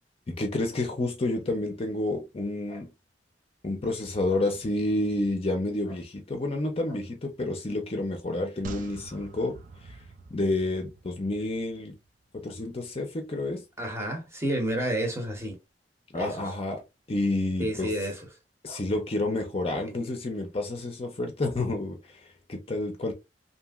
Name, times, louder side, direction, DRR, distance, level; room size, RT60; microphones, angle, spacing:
voice 1, 0.3-2.9 3.6-9.6 9.9-10.0 10.3-11.9 12.3-13.6 16.1-16.8 17.1-17.9 18.6-23.1, left 2 dB, 35° left, 0.5 m, -29 dB
sound 1, 8.6-12.1 12.4-12.5, right 3 dB, 50° right, 0.4 m, -45 dB
voice 2, 13.8-15.6 16.1-16.4 17.6-18.2, right 1 dB, 15° right, 0.8 m, -30 dB
2.8 x 2.6 x 2.3 m
head